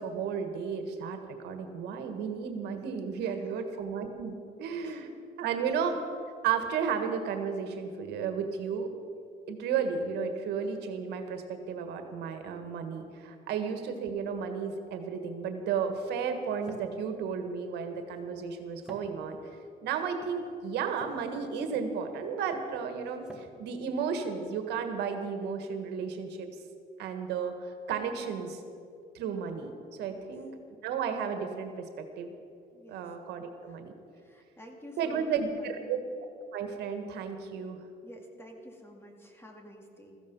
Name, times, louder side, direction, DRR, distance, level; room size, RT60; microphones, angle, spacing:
voice 1, 0.0-5.1 5.4-6.0 6.4-8.9 9.5-19.4 19.8-26.5 27.0-28.6 29.1-29.7 30.0-32.3 32.9-33.9 35.0-36.0 36.5-37.8, right 6 dB, 80° right, 6 dB, 1.6 m, -33 dB
voice 2, 3.2-3.6 4.8-5.0 5.4-5.7 30.0-30.3 32.7-33.1 33.7-33.8 34.1-36.0 38.0-40.2, equal, 15° left, 2 dB, 2.3 m, -51 dB
sound 1, 15.3-24.8, right 1 dB, 5° right, 1.7 m, -54 dB
16.0 x 14.5 x 5.5 m, 2.6 s
cardioid pair, 110°, 17 cm